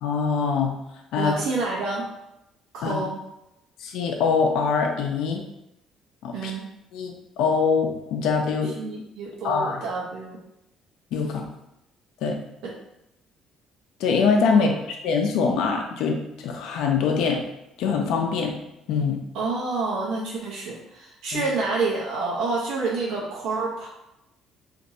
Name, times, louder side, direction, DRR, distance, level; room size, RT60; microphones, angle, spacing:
voice 1, 0.0-0.8 1.1-1.3 2.8-3.0 3.8-5.4 6.2-6.5 6.9-8.7 9.4-9.8 11.1-11.4 12.2-12.4 14.0-17.4 17.8-18.6 18.9-19.2 21.3-21.4, left 5 dB, 80° left, 1 dB, 0.5 m, -23 dB
voice 2, 1.2-2.1 2.7-3.2 6.3-6.7 8.6-10.4 12.6-12.7 19.3-23.9, right 3 dB, 80° right, -4 dB, 0.7 m, -28 dB
2.6 x 2.6 x 4.1 m, 0.87 s
cardioid pair, 135°, 0 cm